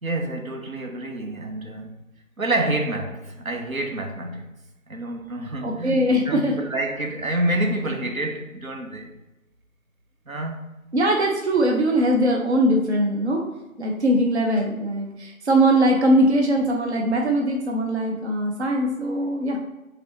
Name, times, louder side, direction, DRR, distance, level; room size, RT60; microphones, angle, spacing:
voice 1, 0.0-1.9 2.4-4.4 4.9-9.2 10.3-10.6, right 1 dB, 70° right, 0.9 m, -28 dB
voice 2, 5.6-6.6 10.9-13.4 13.8-19.6, right 1 dB, 50° right, 0.7 m, -21 dB
5.0 x 3.3 x 2.8 m
figure-of-eight pair, 160°, 42 cm